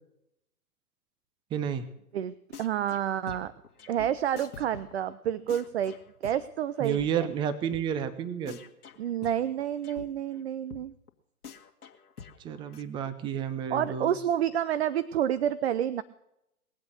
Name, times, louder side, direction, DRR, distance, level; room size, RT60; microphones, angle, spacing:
voice 1, 1.5-1.9 6.8-8.6 12.4-14.2, right 8 dB, 10° right, 13 dB, 0.7 m, -31 dB
voice 2, 2.1-3.5 3.9-5.9 6.2-7.3 9.0-10.9 13.7-16.0, right 10 dB, 45° right, 16 dB, 0.7 m, -29 dB
sound 1, 2.5-3.0 3.3-7.1 7.4-7.5 7.7-7.8 8.1-8.2 8.5-10.0 10.3-10.4 10.7-10.8 11.1-11.2 11.4-12.8, left 7 dB, 80° left, 2.1 m, -46 dB
21.0 x 8.2 x 6.5 m, 0.82 s
hypercardioid pair, 130°, 45 cm